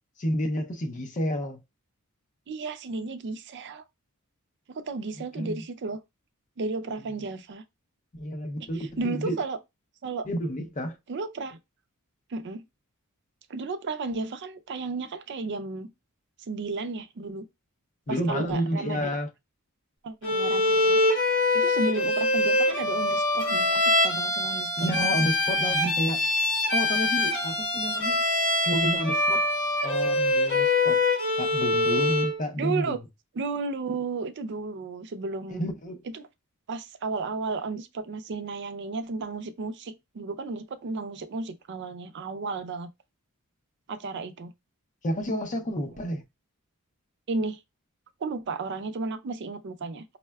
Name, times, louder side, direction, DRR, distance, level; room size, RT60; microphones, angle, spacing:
voice 1, 0.2-1.6 5.4-5.6 8.1-9.4 10.2-11.0 18.1-19.3 24.8-26.3 26.7-28.2 28.6-29.5 29.8-31.0 31.4-32.9 35.5-36.0 45.0-46.2, equal, 35° left, 0.6 m, -30 dB
voice 2, 2.5-3.8 4.7-6.0 6.6-7.6 8.7-9.6 10.0-10.3 11.1-11.6 12.3-12.6 13.5-15.9 16.5-17.5 18.1-19.2 20.0-21.0 21.5-25.3 32.6-33.0 33.3-35.7 36.1-36.3 36.7-42.9 43.9-44.5 47.3-47.6 48.2-50.0, right 3 dB, 55° right, 0.4 m, -33 dB
Bowed string instrument, 20.2-32.4, left 2 dB, 60° left, 1.1 m, -24 dB
5.4 x 2.2 x 2.2 m
head